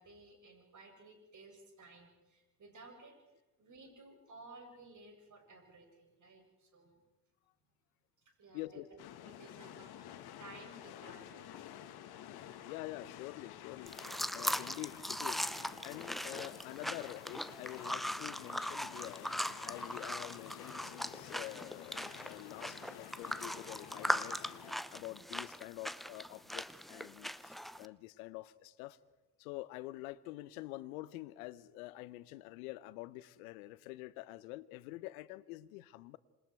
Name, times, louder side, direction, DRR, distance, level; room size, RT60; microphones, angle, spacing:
voice 1, 0.0-3.2 3.6-7.0 8.2-11.7, right 2 dB, 40° right, 6.9 m, -56 dB
voice 2, 8.5-8.9 12.6-15.5 15.8-19.3 19.6-24.5 24.9-29.0 29.4-36.2, left 18 dB, 75° left, 0.9 m, -47 dB
sound 1, 9.0-24.7, left 11 dB, 60° left, 1.9 m, -51 dB
sound 2, 13.9-27.9, equal, ahead, 0.7 m, -40 dB
27.0 x 21.5 x 4.6 m
hypercardioid pair, 55°, 44 cm